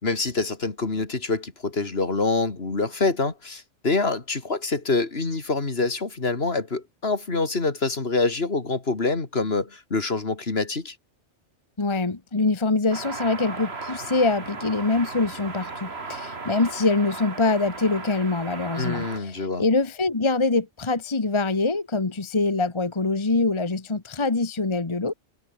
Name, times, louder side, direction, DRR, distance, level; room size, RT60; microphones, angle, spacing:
voice 1, 0.0-11.0 18.8-19.6, left 3 dB, 55° left, 2.7 m, -26 dB
voice 2, 11.8-25.1, left 3 dB, 25° left, 1.3 m, -24 dB
sound 1, 12.9-19.2, right 4 dB, 60° right, 2.5 m, -36 dB
omnidirectional pair, 1.2 m